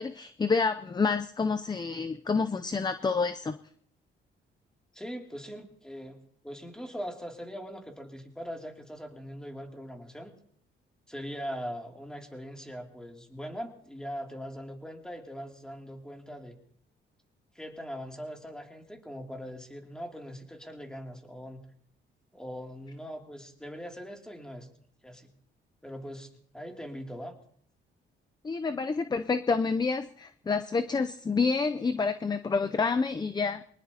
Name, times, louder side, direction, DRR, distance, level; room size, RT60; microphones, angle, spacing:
voice 1, 0.0-3.6 28.4-33.6, left 4 dB, 20° left, 10 dB, 0.6 m, -28 dB
voice 2, 4.9-6.2 6.4-10.3 11.1-16.6 17.5-21.6 22.3-24.7 25.0-25.3 25.8-27.3, equal, 5° left, 2 dB, 2.8 m, -41 dB
23.5 x 19.5 x 2.9 m, 0.63 s
cardioid pair, 90°, 20 cm